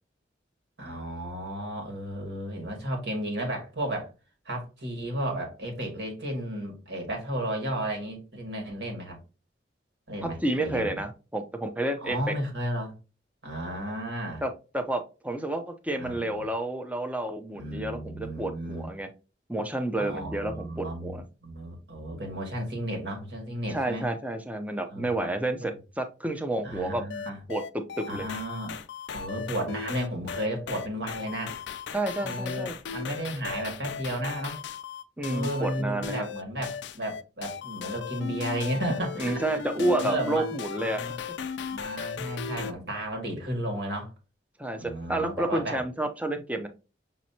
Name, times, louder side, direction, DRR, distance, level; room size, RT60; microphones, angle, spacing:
voice 1, 0.8-4.1 4.5-9.2 10.1-11.0 12.0-12.9 13.4-14.4 16.0-16.3 17.5-18.9 20.0-24.0 24.9-25.8 26.6-27.4 28.1-28.8 29.1-31.6 32.2-34.6 35.2-40.5 40.9-41.2 41.7-44.1 44.8-45.8, right 1 dB, 65° right, 1 dB, 1.9 m, -33 dB
voice 2, 10.4-12.3 14.4-19.1 19.5-21.2 23.7-27.0 27.5-28.3 31.9-32.7 35.2-36.3 39.2-41.2 44.6-46.7, right 1 dB, 10° right, 6 dB, 0.6 m, -30 dB
sound 1, 27.1-42.7, left 6 dB, 70° left, 0.4 m, -37 dB
6.1 x 3.1 x 2.8 m, 0.31 s
head